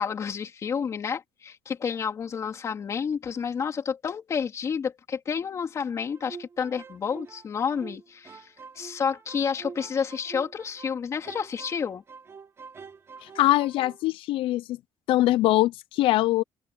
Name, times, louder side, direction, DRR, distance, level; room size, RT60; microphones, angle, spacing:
voice 1, 0.0-12.0, left 6 dB, 30° left, 3.3 m, -30 dB
sound 1, 6.1-11.0 11.2-14.0, right 5 dB, 25° right, 3.9 m, -45 dB
voice 2, 13.4-14.8 15.1-16.4, left 16 dB, 65° left, 0.4 m, -22 dB
open air
cardioid pair, 175°, 10 cm